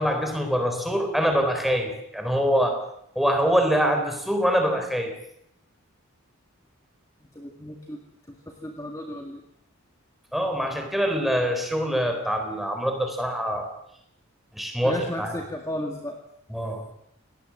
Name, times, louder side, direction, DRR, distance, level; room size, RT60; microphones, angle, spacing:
voice 1, 0.0-2.8 3.2-5.1 10.3-13.7 14.5-15.4 16.5-16.9, equal, ahead, 4 dB, 4.1 m, -24 dB
voice 2, 7.3-8.0 8.3-9.4 14.8-16.2, equal, 15° left, 2 dB, 2.0 m, -34 dB
26.0 x 19.0 x 7.6 m, 0.75 s
head